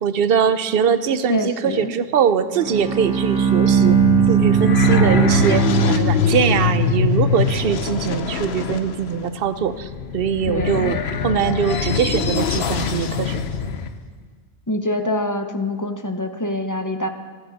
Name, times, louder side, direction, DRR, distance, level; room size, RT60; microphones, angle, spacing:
voice 1, 0.0-4.0 4.3-11.0 11.2-13.4, right 7 dB, 65° right, 12 dB, 0.9 m, -22 dB
voice 2, 1.3-1.9 10.5-11.0 14.7-17.1, left 1 dB, 20° left, 6 dB, 0.9 m, -25 dB
Bowed string instrument, 2.5-6.6, right 8 dB, 5° right, 1.8 m, -19 dB
sound 1, 3.4-13.9, left 5 dB, 75° left, 1.0 m, -23 dB
24.0 x 10.0 x 4.1 m, 1.5 s
omnidirectional pair, 1.1 m